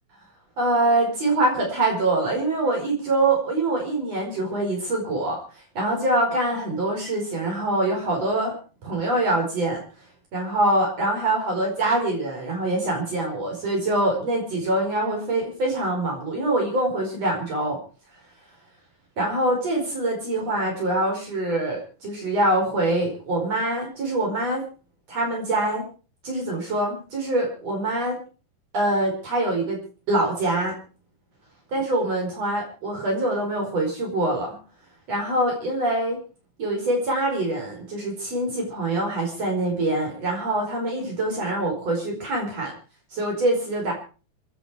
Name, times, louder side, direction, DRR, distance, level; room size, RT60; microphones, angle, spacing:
voice 1, 0.6-8.5 8.8-9.8 10.3-17.8 19.2-24.6 25.1-25.8 26.2-28.2 28.7-29.8 30.1-30.8 31.7-34.6 35.1-36.2 36.6-42.7 43.1-43.9, right 2 dB, 60° right, 0 dB, 6.0 m, -24 dB
27.0 x 9.4 x 4.8 m, 0.37 s
omnidirectional pair, 3.4 m